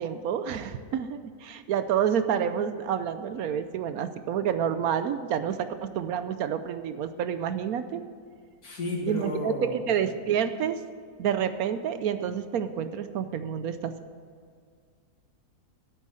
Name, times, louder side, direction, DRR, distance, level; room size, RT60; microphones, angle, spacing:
voice 1, 0.0-8.1 9.0-10.8 11.2-13.9, right 8 dB, 75° right, 11 dB, 1.0 m, -29 dB
voice 2, 8.6-10.0, left 1 dB, 70° left, -1 dB, 2.7 m, -32 dB
9.8 x 8.2 x 7.6 m, 2.1 s
omnidirectional pair, 1.7 m